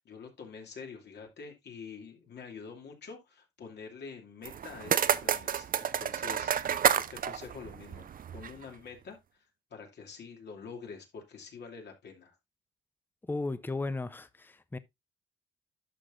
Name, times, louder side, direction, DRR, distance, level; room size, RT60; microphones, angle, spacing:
voice 1, 0.0-9.2 9.7-12.3, left 5 dB, 60° left, 2.8 m, -46 dB
sound 1, 4.4-8.6, right 8 dB, 45° right, 0.6 m, -30 dB
voice 2, 13.3-14.8, left 3 dB, 10° left, 0.7 m, -35 dB
11.5 x 6.1 x 2.5 m
cardioid pair, 90°, 20 cm